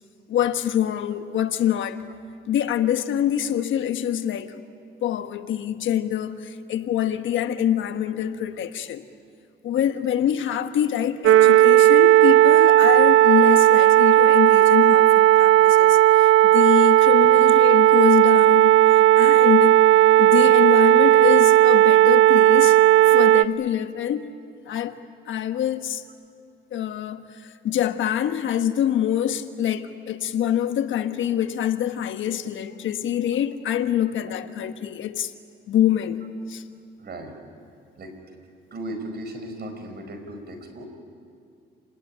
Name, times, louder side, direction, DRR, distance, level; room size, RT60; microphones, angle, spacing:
voice 1, 0.3-2.0 2.5-4.6 5.0-9.1 9.6-19.8 20.2-22.8 23.1-24.2 24.6-25.0 25.3-26.0 26.7-35.3 35.7-36.6, left 10 dB, 75° left, 9 dB, 1.3 m, -25 dB
sound 1, 11.2-23.4, right 14 dB, 80° right, 0.6 m, -14 dB
voice 2, 37.0-37.3 38.0-38.1 38.7-40.9, right 1 dB, 55° right, 5 dB, 5.4 m, -36 dB
28.5 x 19.5 x 10.0 m, 2.3 s
cardioid pair, 90°, 20 cm